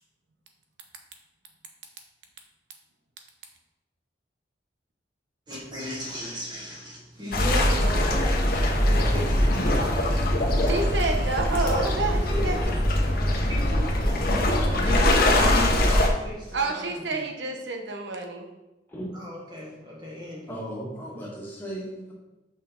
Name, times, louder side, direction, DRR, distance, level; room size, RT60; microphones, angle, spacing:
voice 1, 5.5-10.0 11.2-11.4 12.9-13.6 14.7-17.2 19.1-20.5, left 1 dB, 25° right, -5 dB, 1.6 m, -36 dB
sound 1, 7.3-16.1, left 1 dB, 55° left, 1.0 m, -22 dB
voice 2, 10.7-13.2 16.5-18.5, right 3 dB, 85° right, 4 dB, 0.9 m, -29 dB
voice 3, 20.5-22.1, right 1 dB, 10° left, -5 dB, 1.7 m, -36 dB
5.7 x 5.1 x 3.8 m, 1.0 s
head